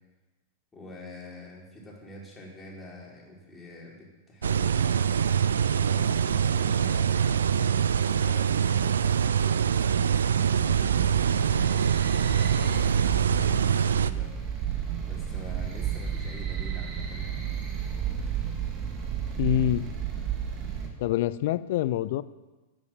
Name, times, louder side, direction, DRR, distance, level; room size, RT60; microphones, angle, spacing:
voice 1, 0.7-5.2 5.8-14.6 15.1-17.6, left 1 dB, 15° left, -3 dB, 4.5 m, -45 dB
sound 1, 4.4-14.1, right 8 dB, 70° right, 0.5 m, -24 dB
sound 2, 10.5-20.9, right 8 dB, 30° right, 2.7 m, -32 dB
voice 2, 19.4-19.9 21.0-22.2, left 13 dB, 55° left, 17 dB, 0.5 m, -26 dB
11.5 x 9.3 x 7.4 m, 1.2 s
figure-of-eight pair, 95°, 0 cm